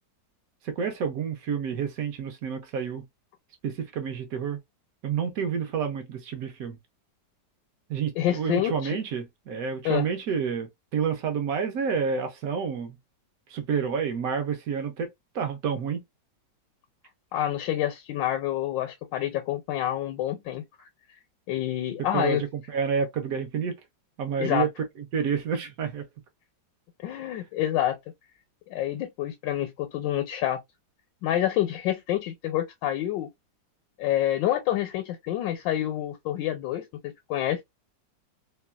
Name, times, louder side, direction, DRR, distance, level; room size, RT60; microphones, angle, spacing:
voice 1, 0.6-3.0 3.6-4.6 5.0-6.8 7.9-13.0 13.5-16.0 22.1-23.7 24.2-24.7 25.1-26.0, right 6 dB, 70° right, 0.9 m, -29 dB
voice 2, 8.2-9.0 9.8-10.0 17.3-20.6 21.5-22.4 24.4-24.7 27.0-28.0 28.7-30.6 31.2-33.3 34.0-37.6, left 12 dB, 85° left, 1.3 m, -27 dB
3.0 x 2.2 x 2.2 m
omnidirectional pair, 1.9 m